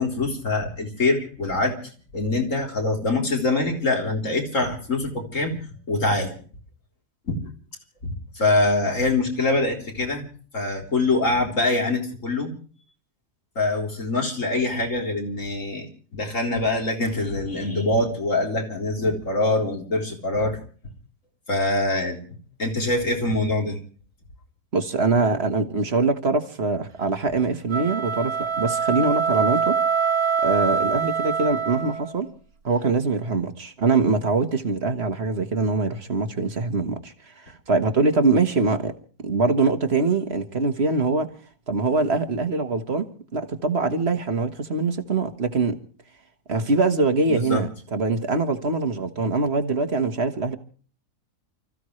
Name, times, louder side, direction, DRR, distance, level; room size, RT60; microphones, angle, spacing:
voice 1, 0.0-1.8 2.1-5.6 5.9-6.3 7.3-7.5 8.0-10.3 10.5-12.5 13.6-20.6 21.5-22.2 22.6-23.8 47.3-47.6, left 2 dB, 55° left, 4.2 m, -24 dB
voice 2, 24.7-29.8 30.4-32.3 32.6-37.1 37.5-38.9 39.2-41.3 41.7-45.8 46.5-50.6, right 3 dB, 45° right, 1.8 m, -23 dB
sound 1, 27.6-32.2, right 6 dB, 75° right, 2.4 m, -24 dB
29.5 x 15.0 x 3.2 m
omnidirectional pair, 1.6 m